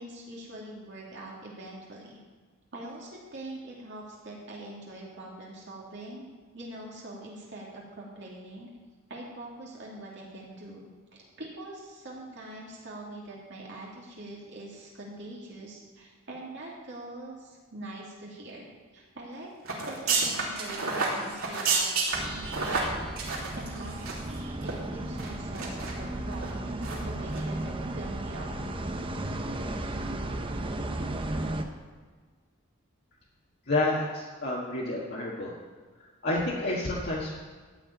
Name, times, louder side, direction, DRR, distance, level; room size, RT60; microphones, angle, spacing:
voice 1, 0.0-2.2 2.7-6.3 6.5-8.7 9.1-18.7 18.9-19.5 19.8-28.8, right 1 dB, 55° right, -4 dB, 2.5 m, -43 dB
sound 1, 19.6-24.3 24.6-24.7 25.2-25.9 26.3-26.5 26.8-27.0 27.3-27.4, right 4 dB, 85° right, 2.9 m, -30 dB
sound 2, 22.1-31.6, right 1 dB, 25° right, 0.8 m, -34 dB
voice 2, 33.7-35.5 36.0-37.3, left 2 dB, 50° left, -5 dB, 1.7 m, -29 dB
14.5 x 4.9 x 9.1 m, 1.5 s
head